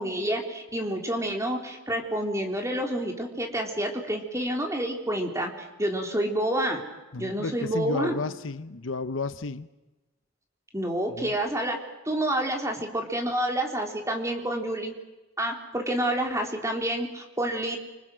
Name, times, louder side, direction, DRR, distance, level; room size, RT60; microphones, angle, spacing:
voice 1, 0.0-5.5 5.8-6.8 7.2-8.2 10.7-11.8 12.1-14.9 15.4-17.8, right 1 dB, 15° right, 3.8 m, -28 dB
voice 2, 7.1-9.7 11.2-11.3, left 3 dB, 80° left, 0.9 m, -32 dB
29.0 x 26.0 x 6.3 m
head